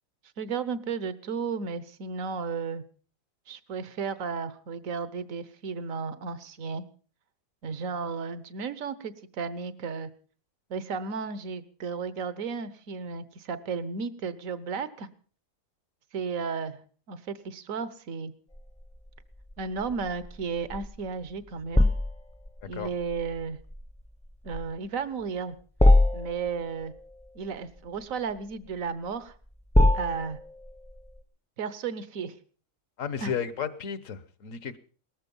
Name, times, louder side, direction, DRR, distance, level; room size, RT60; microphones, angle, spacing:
voice 1, 0.4-2.8 3.5-6.8 7.6-10.1 10.7-15.1 16.1-18.3 19.6-21.9 22.7-23.6 24.4-25.5 26.1-26.9 27.3-29.3 29.9-30.4 31.6-32.4 33.2-33.3, right 5 dB, 80° right, 1.5 m, -34 dB
sound 1, 18.5-31.2, left 1 dB, 10° left, 0.5 m, -27 dB
voice 2, 33.0-34.8, left 7 dB, 75° left, 1.5 m, -33 dB
18.5 x 14.0 x 5.4 m
omnidirectional pair, 1.4 m